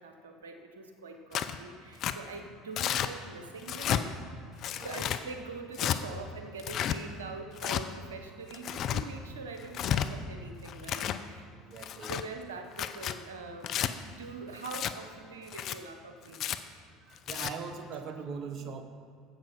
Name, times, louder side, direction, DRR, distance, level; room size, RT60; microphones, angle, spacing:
voice 1, 0.0-4.1 4.8-11.5 12.0-13.8 14.0-16.5, right 3 dB, 85° right, 6 dB, 1.0 m, -44 dB
Tearing, 1.3-1.6 2.0-2.2 2.8-3.1 3.6-4.0 4.6-5.2 5.7-6.0 6.6-7.0 7.6-7.8 8.5-9.0 9.6-10.1 10.7-11.2 11.8-12.2 12.7-13.2 13.6-13.9 14.6-14.9 15.5-15.8 16.3-16.6 17.2-17.5, left 10 dB, 50° left, 0.6 m, -31 dB
voice 2, 11.6-12.1 17.0-18.8, right 5 dB, 50° right, 8 dB, 1.1 m, -41 dB
10.0 x 7.8 x 5.7 m, 2.3 s
hypercardioid pair, 70°, 0 cm